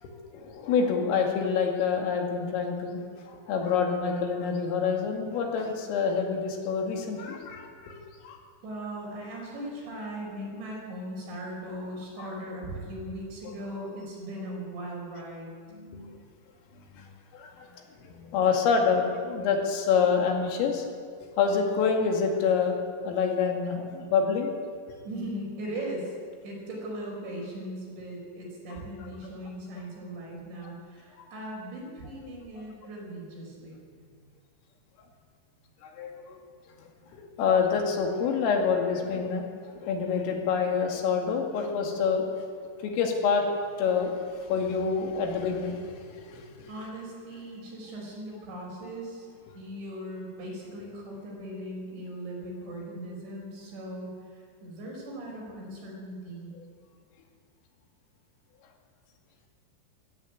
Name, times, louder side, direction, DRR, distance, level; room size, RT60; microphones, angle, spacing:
voice 1, 0.0-8.4 12.2-12.3 15.7-16.1 16.9-17.1 17.3-17.7 18.0-20.9 21.4-22.8 23.0-24.5 28.7-29.1 31.2-31.3 35.8-36.4 37.1-39.5 39.8-42.3 42.8-43.5 43.8-44.1 44.5-46.7 56.5-56.6, left 6 dB, 80° left, 2 dB, 4.9 m, -27 dB
voice 2, 8.6-15.5 25.1-26.1 26.4-33.8 46.7-49.3 49.6-54.1 54.6-56.5, right 1 dB, 60° right, -2 dB, 8.7 m, -38 dB
21.5 x 15.0 x 9.4 m, 2.1 s
omnidirectional pair, 5.9 m